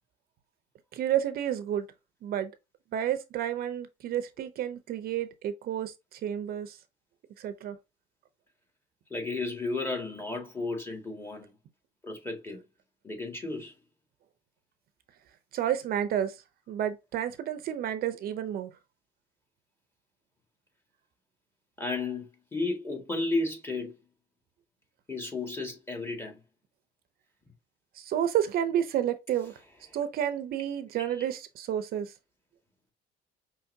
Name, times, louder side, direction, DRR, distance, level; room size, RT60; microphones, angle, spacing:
voice 1, 0.9-1.8 2.2-2.5 2.9-6.7 7.4-7.8 15.5-16.3 16.7-18.7 28.0-29.5 29.9-32.1, right 10 dB, 65° right, 0.6 m, -30 dB
voice 2, 9.1-11.5 12.0-12.6 13.0-13.7 21.8-24.0 25.1-26.4 31.1-31.2, left 3 dB, 15° left, 1.9 m, -33 dB
5.6 x 3.1 x 2.7 m
cardioid pair, 110°, 17 cm